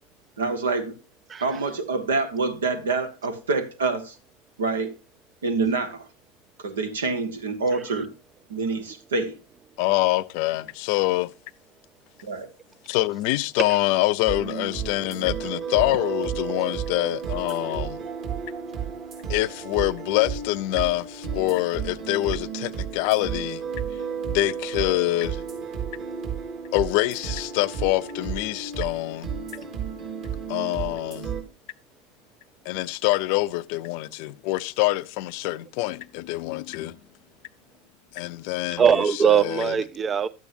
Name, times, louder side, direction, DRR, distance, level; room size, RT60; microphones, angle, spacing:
voice 1, 0.4-0.9 1.4-4.2 4.6-4.9 5.4-6.1 6.6-8.1 8.5-9.4 12.2-12.5, right 4 dB, 75° right, 1.3 m, -26 dB
voice 2, 9.8-11.3 12.8-18.0 19.3-23.6 24.3-25.4 26.7-29.3 30.5-31.3 32.7-37.0 38.1-38.8 39.2-39.7, left 18 dB, 55° left, 0.4 m, -25 dB
sound 1, 14.3-31.4, right 7 dB, 45° right, 4.0 m, -33 dB
voice 3, 38.7-40.3, right 7 dB, 25° right, 0.4 m, -21 dB
12.0 x 8.3 x 2.6 m
figure-of-eight pair, 80°, 0 cm